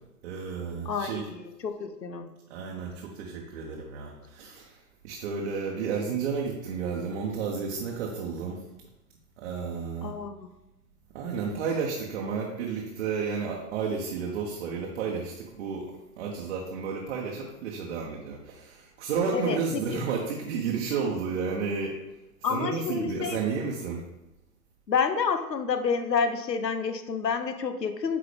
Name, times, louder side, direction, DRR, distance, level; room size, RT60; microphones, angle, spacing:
voice 1, 0.2-1.3 2.5-4.8 5.0-8.6 9.4-10.1 11.1-15.9 16.2-22.0 22.5-24.0, right 5 dB, 45° right, -2 dB, 1.1 m, -32 dB
voice 2, 0.8-2.3 10.0-10.5 19.3-19.6 19.9-20.0 22.4-23.4 24.9-28.2, left 6 dB, 90° left, 9 dB, 0.9 m, -29 dB
8.6 x 4.0 x 3.4 m, 0.97 s
hypercardioid pair, 125°, 48 cm